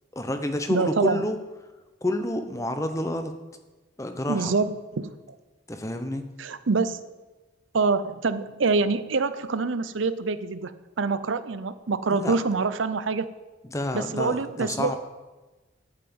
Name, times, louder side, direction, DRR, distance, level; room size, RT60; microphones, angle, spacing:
voice 1, 0.1-1.4 2.0-3.3 4.0-4.5 5.7-6.2 12.1-12.4 13.7-15.0, left 1 dB, 15° left, 7 dB, 0.8 m, -29 dB
voice 2, 0.7-1.2 4.3-5.2 6.4-7.0 7.7-13.3 13.9-15.0, right 4 dB, 75° right, 13 dB, 0.6 m, -26 dB
11.0 x 5.8 x 8.7 m, 1.2 s
head